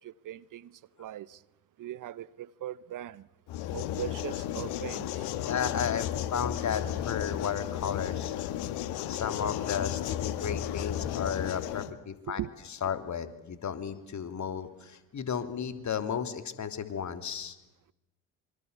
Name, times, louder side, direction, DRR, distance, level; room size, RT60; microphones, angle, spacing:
voice 1, 0.0-1.4 1.8-3.3 3.7-5.3 12.3-12.5, right 12 dB, 50° right, 1.0 m, -40 dB
sound 1, 3.5-11.9, left 11 dB, 70° left, 2.0 m, -33 dB
voice 2, 5.4-8.4 9.1-12.4 12.8-17.6, left 7 dB, 45° left, 3.2 m, -34 dB
26.5 x 25.5 x 8.2 m
hypercardioid pair, 55°, 40 cm